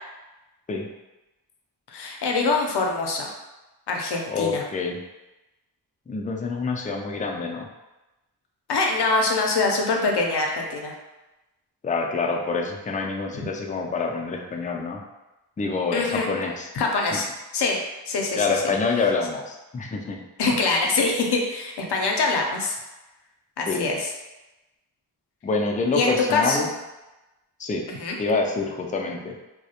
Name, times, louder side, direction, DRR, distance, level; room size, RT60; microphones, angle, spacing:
voice 1, 1.9-3.3 3.9-4.6 8.7-10.9 15.9-16.3 16.8-17.3 17.5-17.8 18.1-18.5 20.4-22.7 23.6-24.1 25.9-26.7 27.9-28.2, left 3 dB, 65° left, 1 dB, 0.6 m, -24 dB
voice 2, 4.3-5.0 6.1-7.7 11.8-15.0 15.6-16.7 17.1-17.2 18.3-20.2 23.7-23.9 25.4-26.7 27.6-27.9 28.2-29.3, left 4 dB, 20° left, 1 dB, 0.3 m, -26 dB
2.3 x 2.1 x 2.8 m, 1.0 s
cardioid pair, 45°, 44 cm